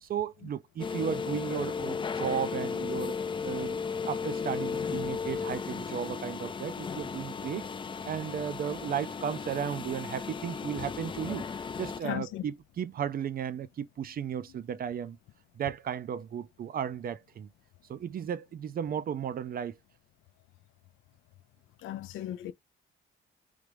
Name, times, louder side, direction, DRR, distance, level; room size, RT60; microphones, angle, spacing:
voice 1, 0.0-3.2 3.4-7.6 8.1-11.5 11.8-15.2 15.6-17.5 17.9-19.8, right 8 dB, 50° right, 0.5 m, -35 dB
sound 1, 0.8-12.0, left 5 dB, 25° left, 0.4 m, -35 dB
voice 2, 12.0-12.4 21.8-22.5, left 13 dB, 80° left, 0.5 m, -36 dB
3.2 x 2.5 x 3.3 m
cardioid pair, 90°, 20 cm